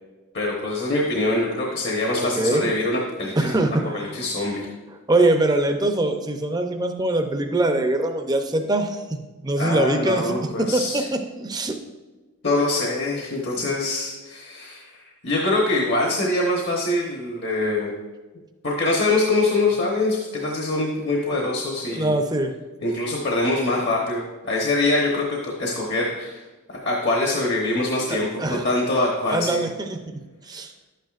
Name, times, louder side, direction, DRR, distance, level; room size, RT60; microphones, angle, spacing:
voice 1, 0.3-3.5 3.9-4.7 9.6-11.0 12.4-17.9 18.6-22.2 22.8-26.4 26.7-29.6, left 2 dB, 50° left, -2 dB, 1.1 m, -24 dB
voice 2, 2.2-2.7 3.4-4.2 5.1-11.8 21.9-22.5 28.1-28.6 29.3-30.0 30.5-30.7, right 2 dB, 20° right, 5 dB, 0.6 m, -23 dB
11.0 x 9.1 x 2.5 m, 1.2 s
head